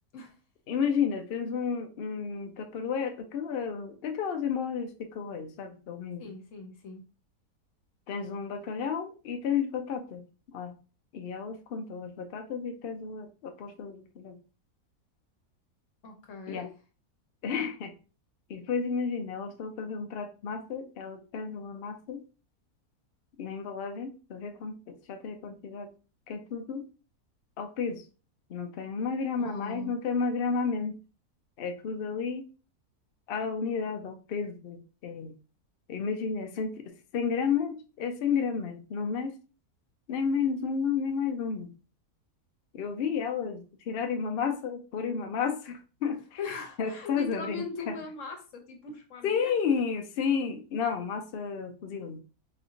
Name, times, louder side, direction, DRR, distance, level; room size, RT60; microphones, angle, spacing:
voice 1, 0.7-6.3 8.1-10.3 10.5-10.7 11.1-14.4 16.5-16.7 17.4-17.9 18.5-22.2 23.4-25.9 26.3-26.9 27.6-28.0 28.5-31.0 31.6-32.5 33.3-35.3 35.9-39.4 40.1-41.7 42.7-46.4 46.8-47.9 49.2-52.2, left 6 dB, 75° left, 5 dB, 0.5 m, -32 dB
voice 2, 6.2-7.0 16.0-16.7 29.4-29.9 46.4-49.5, left 4 dB, 60° left, 3 dB, 1.1 m, -40 dB
4.1 x 2.7 x 2.7 m, 0.35 s
omnidirectional pair, 1.6 m